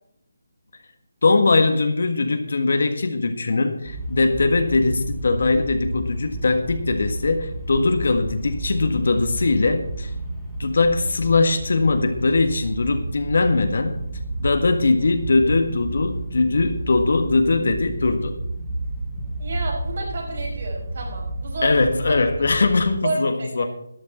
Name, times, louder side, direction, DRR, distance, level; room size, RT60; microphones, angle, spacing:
voice 1, 1.2-10.1 10.6-14.0 14.4-18.3 21.6-23.6, left 3 dB, 60° left, 7 dB, 1.6 m, -21 dB
sound 1, 3.9-22.9, right 1 dB, ahead, 2.5 m, -31 dB
voice 2, 19.4-21.8 22.1-22.2 23.0-23.7, right 2 dB, 55° right, -1 dB, 5.7 m, -30 dB
13.5 x 10.5 x 4.3 m, 0.78 s
figure-of-eight pair, 155°, 0 cm